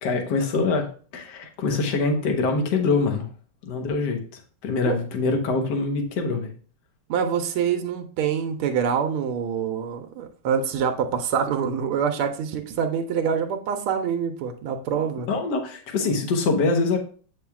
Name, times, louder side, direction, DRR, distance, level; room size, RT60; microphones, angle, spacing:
voice 1, 0.0-0.9 1.1-3.2 3.7-4.2 4.6-6.5 15.3-17.0, left 3 dB, 60° left, 4 dB, 1.5 m, -24 dB
voice 2, 7.1-15.3, right 7 dB, 90° right, 6 dB, 1.6 m, -25 dB
8.6 x 5.7 x 2.3 m, 0.43 s
omnidirectional pair, 2.4 m